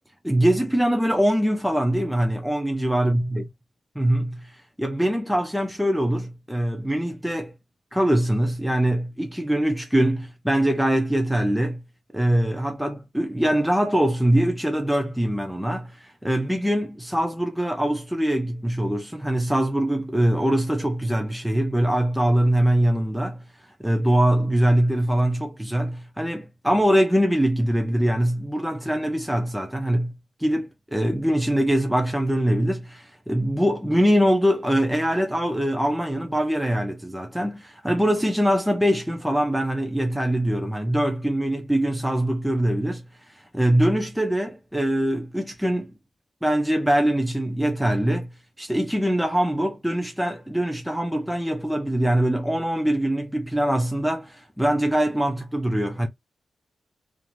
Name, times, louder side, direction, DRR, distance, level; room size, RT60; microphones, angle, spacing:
voice 1, 0.2-3.4 4.0-7.5 7.9-11.8 12.1-23.4 23.8-30.1 30.4-45.9 46.4-48.3 48.6-56.1, right 1 dB, 5° right, 0.4 m, -23 dB
2.5 x 2.4 x 2.9 m
wide cardioid pair, 135°, 0 cm